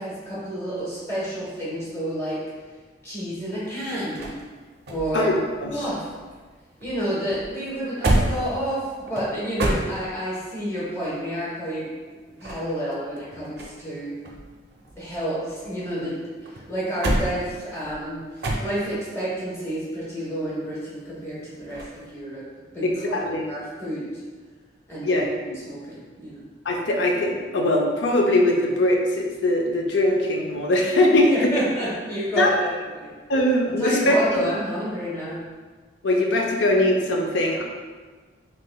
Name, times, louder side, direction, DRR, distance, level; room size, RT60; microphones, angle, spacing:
voice 1, 0.0-2.4 3.0-4.3 4.9-5.3 5.7-6.0 6.8-11.8 12.4-14.1 15.0-22.4 22.7-24.0 24.9-26.5 31.3-33.1 33.8-35.4, right 1 dB, 15° left, -8 dB, 1.0 m, -30 dB
sound 1, 3.4-6.5 6.8-10.4 12.2-13.9 14.2-16.0 16.5-19.1 21.7-22.0, right 1 dB, 60° right, 0.5 m, -29 dB
voice 2, 22.8-23.5 25.0-25.2 26.6-31.5 32.4-32.5 33.3-34.4 36.0-37.6, left 1 dB, 75° left, 0 dB, 0.5 m, -21 dB
3.6 x 3.2 x 2.2 m, 1.4 s
head